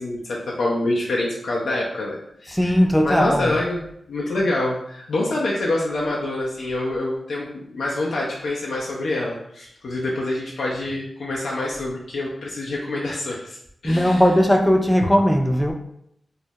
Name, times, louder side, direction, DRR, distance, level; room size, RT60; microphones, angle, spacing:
voice 1, 0.0-2.6 3.0-3.8 4.1-13.6 13.8-14.2 15.0-15.1, left 2 dB, 80° left, -4 dB, 0.4 m, -26 dB
voice 2, 2.5-3.5 13.8-15.7, equal, 5° left, 2 dB, 0.4 m, -18 dB
2.2 x 2.0 x 2.7 m, 0.73 s
cardioid pair, 40°, 0 cm